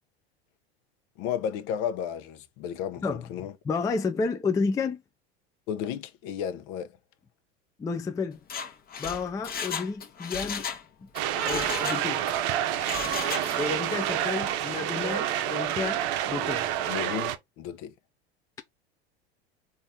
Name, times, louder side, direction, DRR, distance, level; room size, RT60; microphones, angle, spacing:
voice 1, 1.2-3.5 5.7-7.0 11.4-11.8 13.0-13.2 16.9-17.9, left 9 dB, 55° left, 0.8 m, -34 dB
voice 2, 3.6-5.0 7.8-8.4 9.0-10.7 11.0-11.1 11.5-12.2 13.6-16.0 16.3-16.6, left 4 dB, 10° left, 0.4 m, -30 dB
Mechanisms, 8.4-10.8 11.1-12.4 12.7-13.8 14.1-14.2, left 7 dB, 30° left, 1.0 m, -35 dB
sound 1, 11.1-17.4, right 11 dB, 55° right, 0.7 m, -28 dB
4.1 x 2.7 x 3.5 m
hypercardioid pair, 95°, 32 cm